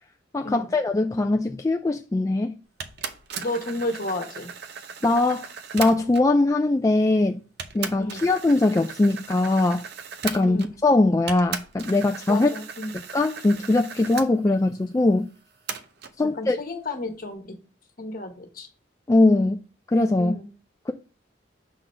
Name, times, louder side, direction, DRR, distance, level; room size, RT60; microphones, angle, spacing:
voice 1, 0.3-2.6 5.0-7.4 7.7-9.8 10.2-12.5 13.1-15.3 16.2-16.6 19.1-19.6 19.9-20.3, left 2 dB, 20° left, 0.3 m, -21 dB
sound 1, 2.8-6.4 7.1-7.2 7.6-10.9 11.3-14.3 15.7-16.2, right 6 dB, 60° right, 0.6 m, -37 dB
voice 2, 3.4-4.5 8.0-8.3 10.4-10.7 12.3-12.9 16.3-17.6 18.0-18.7 20.2-20.5, left 2 dB, 50° left, 1.3 m, -31 dB
6.3 x 4.0 x 4.4 m
head